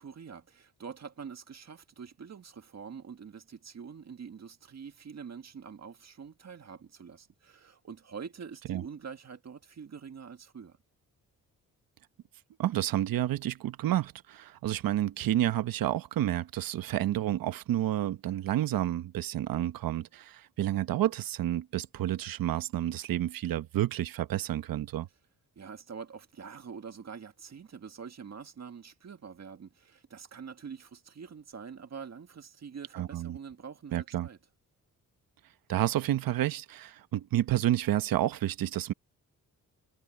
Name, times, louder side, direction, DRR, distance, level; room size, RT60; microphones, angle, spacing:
voice 1, 0.0-10.8 25.6-34.4, right 6 dB, 50° right, 1.9 m, -45 dB
voice 2, 12.6-25.1 32.9-33.4 33.9-34.3 35.7-38.9, right 13 dB, 80° right, 1.1 m, -30 dB
cardioid pair, 75°, 34 cm